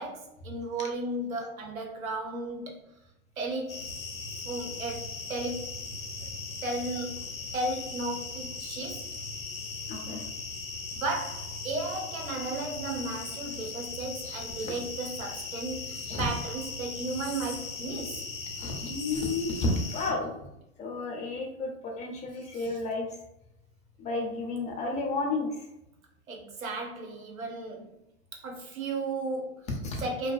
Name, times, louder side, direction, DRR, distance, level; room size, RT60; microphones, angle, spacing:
voice 1, 0.0-2.8 3.4-3.9 4.5-5.7 6.6-7.3 7.5-9.0 10.9-18.3 26.3-27.9 28.3-29.6 30.0-30.3, right 2 dB, 85° right, 1 dB, 0.7 m, -34 dB
sound 1, 3.7-20.1, left 3 dB, 85° left, 0.7 m, -38 dB
voice 2, 9.9-10.2 14.2-14.7 15.9-16.2 18.6-20.5 20.8-23.1 24.0-25.7 29.7-30.0, left 2 dB, 20° left, 0 dB, 0.5 m, -32 dB
2.5 x 2.2 x 2.2 m, 0.83 s
hypercardioid pair, 105°, 40 cm